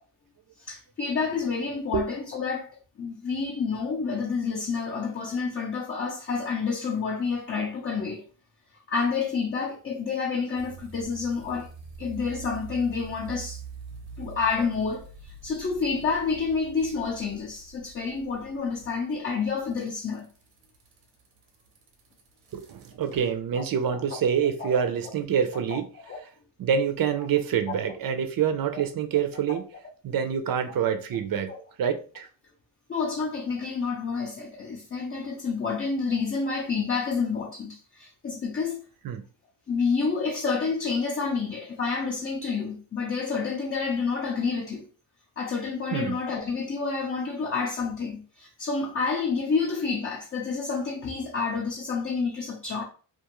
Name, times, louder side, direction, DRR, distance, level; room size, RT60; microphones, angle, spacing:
voice 1, 0.6-8.2 8.9-11.7 12.0-13.6 14.2-20.3 23.6-23.7 23.9-24.0 24.6-24.8 25.7-25.8 26.1-26.2 28.7-28.8 29.5-29.6 31.4-31.6 32.9-38.8 39.7-44.9 45.4-52.8, left 5 dB, 30° left, 0.5 m, -29 dB
sound 1, 10.5-23.3, right 5 dB, 90° right, 0.8 m, -45 dB
voice 2, 22.5-25.9 26.6-29.6 30.0-31.5 31.8-32.3 39.0-39.2 45.9-46.2, right 8 dB, 50° right, 0.5 m, -26 dB
2.5 x 2.4 x 2.9 m
cardioid pair, 95°, 45 cm